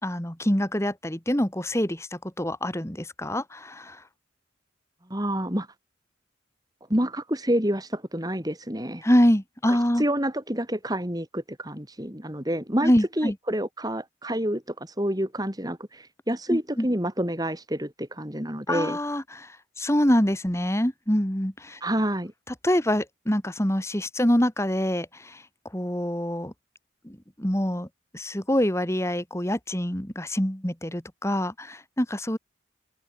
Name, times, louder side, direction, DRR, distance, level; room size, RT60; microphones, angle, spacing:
voice 1, 0.0-4.0 9.0-10.0 12.8-13.4 16.5-16.9 18.7-21.8 22.5-25.4 25.7-26.5 27.0-27.9 28.1-32.4, equal, 15° left, 2.2 m, -25 dB
voice 2, 5.1-5.7 6.9-9.0 9.7-12.9 13.2-19.0 21.8-22.3, right 1 dB, 20° right, 4.5 m, -28 dB
open air
head